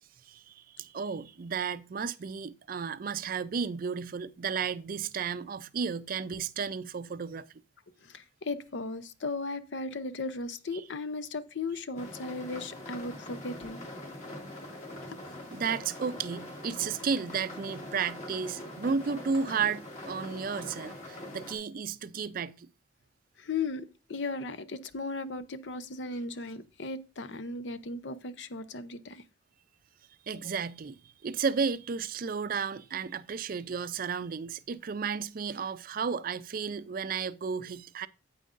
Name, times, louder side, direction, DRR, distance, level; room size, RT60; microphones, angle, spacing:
voice 1, 0.3-7.5 15.5-22.7 30.3-38.1, right 6 dB, 50° right, 0.4 m, -33 dB
voice 2, 8.0-13.8 15.1-15.2 23.4-29.2, left 3 dB, 70° left, 0.7 m, -36 dB
sound 1, 12.0-21.6, left 1 dB, 40° left, 2.3 m, -43 dB
9.0 x 8.5 x 2.5 m
head